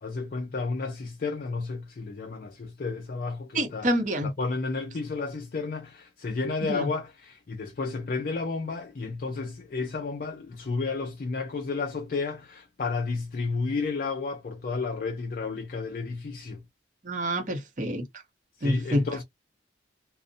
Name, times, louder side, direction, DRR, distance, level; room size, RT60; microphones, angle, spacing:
voice 1, 0.0-3.9 4.2-16.6 18.6-19.2, left 4 dB, 45° left, 0.4 m, -32 dB
voice 2, 3.5-4.3 6.7-6.9 17.0-18.0 18.6-19.0, equal, 40° right, 0.7 m, -27 dB
2.5 x 2.0 x 2.5 m
head